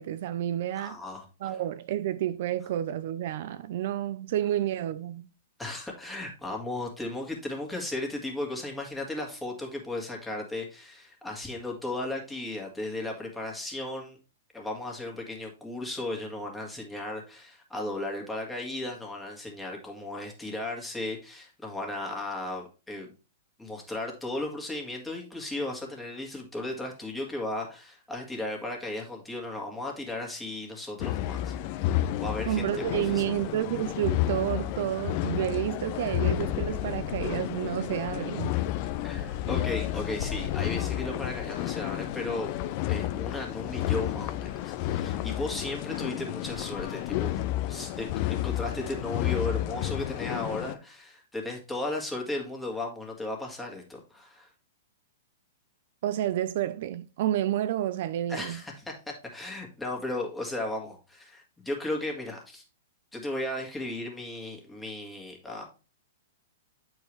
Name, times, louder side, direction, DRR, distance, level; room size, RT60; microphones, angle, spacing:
voice 1, 0.0-1.0 1.4-5.2 32.4-38.6 56.0-58.6, right 12 dB, 55° right, 0.4 m, -30 dB
voice 2, 0.8-1.6 5.6-14.2 14.5-23.1 23.6-31.5 31.8-33.3 39.0-42.5 42.9-47.4 47.7-54.5 58.3-62.6 63.1-65.7, left 2 dB, 10° left, 2.0 m, -35 dB
sound 1, 31.0-50.7, left 13 dB, 45° left, 0.5 m, -31 dB
8.3 x 4.6 x 3.2 m
hypercardioid pair, 115°, 0 cm